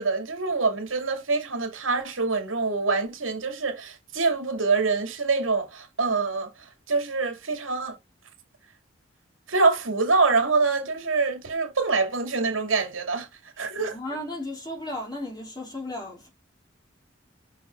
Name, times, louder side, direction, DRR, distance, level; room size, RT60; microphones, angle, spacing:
voice 1, 0.0-6.5 6.9-8.0 9.5-13.3 13.6-13.9, right 4 dB, 80° right, 2.4 m, -25 dB
voice 2, 13.8-16.3, left 1 dB, 20° left, 3.2 m, -35 dB
6.1 x 6.0 x 5.2 m
head